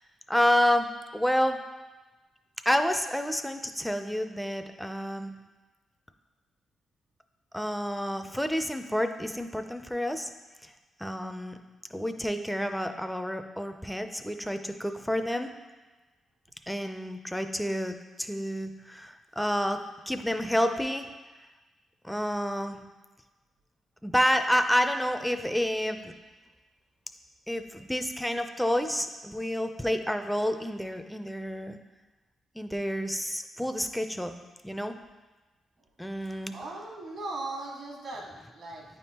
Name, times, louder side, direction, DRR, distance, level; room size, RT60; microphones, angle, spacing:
voice 1, 0.3-1.6 2.7-5.3 7.5-10.3 10.6-10.7 11.0-11.6 11.9-15.5 16.7-21.1 22.0-22.8 24.0-26.1 27.5-31.8 32.6-34.3 34.6-35.0 36.0-36.5, equal, 5° left, 7 dB, 0.5 m, -29 dB
voice 2, 36.3-38.8, right 2 dB, 65° right, -1 dB, 1.5 m, -39 dB
9.1 x 3.6 x 2.9 m, 1.2 s
supercardioid pair, 55°, 0 cm